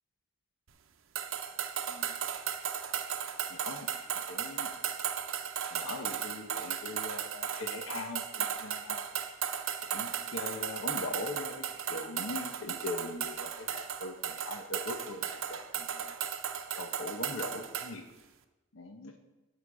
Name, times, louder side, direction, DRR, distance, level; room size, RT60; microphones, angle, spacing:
sound 1, 1.2-17.9, right 8 dB, 75° right, 0.7 m, -36 dB
voice 1, 3.5-3.9 4.3-4.7 5.7-9.0 9.9-16.1 16.7-18.0 18.7-19.1, left 2 dB, 75° left, 5 dB, 1.0 m, -41 dB
13.0 x 5.9 x 4.8 m, 1.1 s
head